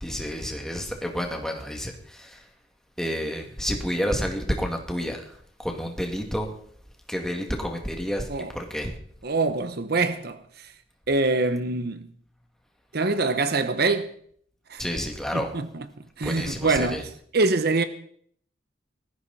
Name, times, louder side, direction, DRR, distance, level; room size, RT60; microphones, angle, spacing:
voice 1, 0.0-2.5 3.0-6.5 7.1-8.9 14.8-15.5 16.2-17.0, equal, 5° left, 2.3 m, -30 dB
voice 2, 9.2-10.7 11.1-12.1 12.9-14.1 14.7-14.8 15.3-17.8, right 3 dB, 55° right, 1.0 m, -25 dB
19.0 x 14.5 x 4.2 m
head